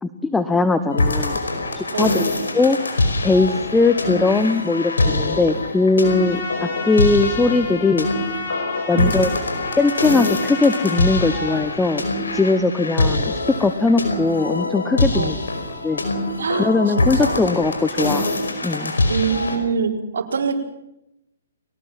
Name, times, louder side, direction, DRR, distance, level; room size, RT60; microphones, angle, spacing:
voice 1, 0.0-1.4 1.7-2.3 2.5-2.8 3.2-8.1 8.9-9.3 9.8-12.0 12.3-13.3 13.6-15.4 15.8-16.0 16.6-18.3 18.6-18.9, left 3 dB, 5° left, 10 dB, 1.0 m, -19 dB
sound 1, 0.9-19.6, left 2 dB, 80° left, 5.1 m, -24 dB
voice 2, 1.9-2.3 8.9-9.2 15.1-15.3 16.4-17.4 19.1-20.6, right 6 dB, 65° right, 0 dB, 4.5 m, -25 dB
Trumpet, 6.0-11.8, left 4 dB, 55° left, 5.6 m, -31 dB
22.5 x 18.5 x 7.5 m, 0.89 s
figure-of-eight pair, 130°, 0 cm